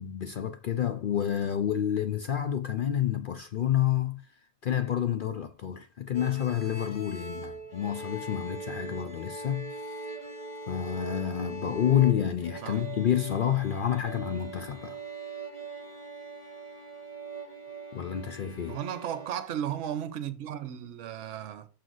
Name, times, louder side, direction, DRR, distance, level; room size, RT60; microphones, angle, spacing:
voice 1, 0.0-4.2 4.6-10.0 10.7-15.0 17.9-18.8, left 10 dB, 70° left, 0.4 m, -29 dB
sound 1, 6.1-19.3, right 3 dB, 30° left, 1.2 m, -41 dB
voice 2, 18.7-21.7, right 10 dB, 60° right, 1.0 m, -35 dB
6.5 x 3.9 x 6.2 m
omnidirectional pair, 1.5 m